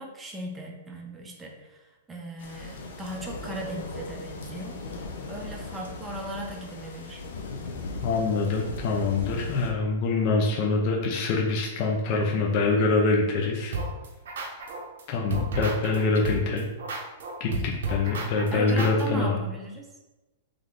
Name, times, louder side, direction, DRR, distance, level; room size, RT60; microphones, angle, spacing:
voice 1, 0.0-1.8 2.1-7.2 18.5-19.9, right 2 dB, 10° right, 0 dB, 0.6 m, -37 dB
sound 1, 2.4-9.7, left 3 dB, 75° left, 0.7 m, -38 dB
voice 2, 8.0-13.7 15.1-16.7 17.4-19.4, left 3 dB, 40° left, -1 dB, 0.7 m, -25 dB
sound 2, 13.7-15.0 15.3-19.0, right 3 dB, 75° right, 0.8 m, -32 dB
3.5 x 3.2 x 3.9 m, 1.1 s
hypercardioid pair, 150°, 0 cm